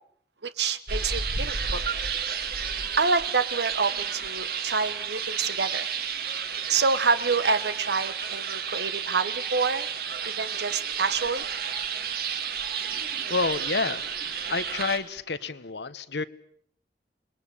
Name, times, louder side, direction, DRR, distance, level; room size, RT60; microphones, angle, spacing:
voice 1, 0.4-1.8 2.9-5.9 6.2-6.3 6.7-9.9 10.4-11.4, right 4 dB, 75° right, 13 dB, 1.2 m, -27 dB
sound 1, 0.9-15.0, right 7 dB, 55° right, 2.6 m, -31 dB
voice 2, 12.9-16.2, left 4 dB, 80° left, 13 dB, 1.1 m, -30 dB
28.0 x 21.5 x 8.4 m, 0.67 s
head